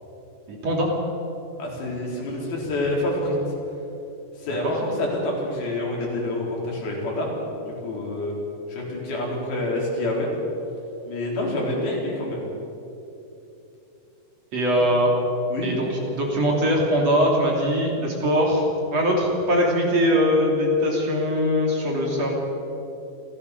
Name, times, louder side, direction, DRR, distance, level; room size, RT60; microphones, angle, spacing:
voice 1, 0.5-0.9 4.6-4.7 14.5-15.1 15.6-18.6 18.9-22.3, equal, 45° right, -1 dB, 3.7 m, -21 dB
voice 2, 1.6-3.4 4.4-7.3 7.6-8.3 8.7-10.3 11.1-12.5 15.5-15.7, left 1 dB, 75° left, -3 dB, 6.1 m, -27 dB
26.5 x 15.5 x 6.8 m, 2.9 s
omnidirectional pair, 4.4 m